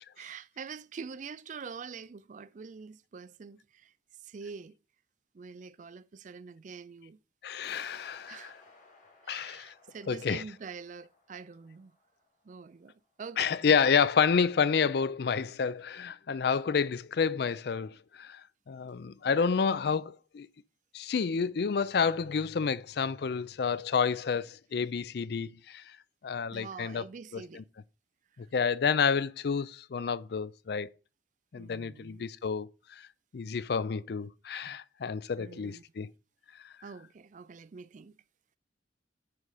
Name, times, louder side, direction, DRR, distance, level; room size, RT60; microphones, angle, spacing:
voice 1, 0.2-3.9 4.2-4.8 5.3-7.2 8.3-8.5 9.2-11.9 12.4-13.8 26.5-27.6 31.6-32.3 35.4-35.8 36.8-38.2, right 5 dB, 45° right, 0.4 m, -45 dB
voice 2, 7.4-8.5 9.3-9.7 10.1-10.4 13.4-18.4 18.7-20.5 20.9-26.0 26.2-27.0 27.3-27.6 28.4-30.9 31.5-33.1 33.3-36.1, left 6 dB, 65° left, 0.4 m, -29 dB
sound 1, 7.6-12.6, left 3 dB, 45° left, 1.9 m, -58 dB
9.7 x 3.8 x 4.9 m
head